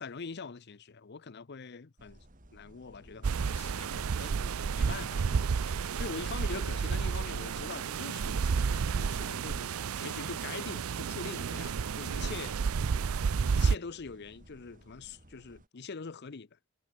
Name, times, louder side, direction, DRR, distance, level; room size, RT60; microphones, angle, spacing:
voice 1, 0.0-2.2 2.5-12.6 13.5-16.6, left 4 dB, 50° left, 0.7 m, -44 dB
sound 1, 2.0-15.7, right 1 dB, 40° right, 3.7 m, -58 dB
sound 2, 2.8-5.5, left 1 dB, 80° left, 4.0 m, -56 dB
sound 3, 3.2-13.8, right 5 dB, 85° right, 0.5 m, -31 dB
head